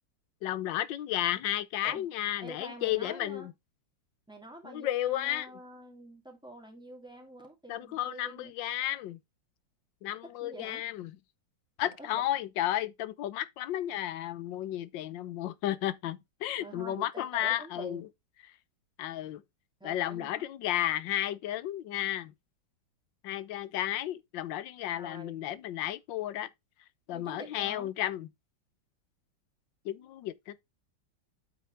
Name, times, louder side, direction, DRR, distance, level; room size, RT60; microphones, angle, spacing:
voice 1, 0.4-3.5 4.6-5.5 7.7-9.2 10.0-11.1 11.8-18.1 19.0-19.4 19.8-22.3 23.2-26.5 27.1-28.3 29.8-30.6, left 13 dB, 75° left, 1.4 m, -33 dB
voice 2, 2.4-3.5 4.3-8.5 10.4-10.8 11.8-12.3 16.6-18.0 19.8-20.5 24.9-25.4 27.1-27.9, right 1 dB, ahead, 2.6 m, -47 dB
8.6 x 5.6 x 3.3 m
omnidirectional pair, 2.1 m